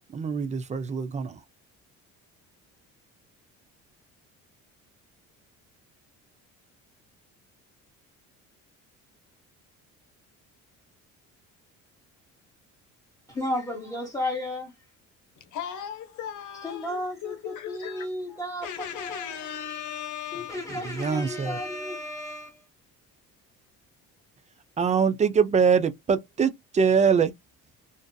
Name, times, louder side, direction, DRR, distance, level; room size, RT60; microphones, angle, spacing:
voice 1, 0.0-1.4 20.9-21.6 24.8-27.3, right 6 dB, 20° right, 0.4 m, -23 dB
voice 2, 13.3-14.7 16.6-19.4 20.3-22.6, left 1 dB, 10° left, 1.2 m, -33 dB
voice 3, 15.4-20.7, left 9 dB, 60° left, 0.9 m, -37 dB
2.6 x 2.4 x 2.2 m
cardioid pair, 95°, 33 cm